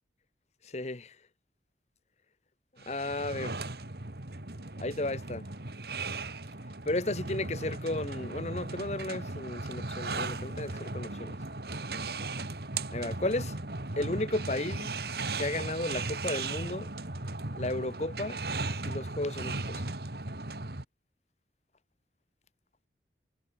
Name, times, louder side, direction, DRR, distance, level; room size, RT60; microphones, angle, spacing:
voice 1, 0.6-1.2 2.9-3.6 4.8-5.5 6.8-11.4 12.9-13.6 14.0-14.9 15.4-16.9 17.5-18.4 18.9-19.8, left 2 dB, 35° left, 1.1 m, -34 dB
sound 1, 2.8-20.8, right 3 dB, 60° right, 2.0 m, -37 dB
head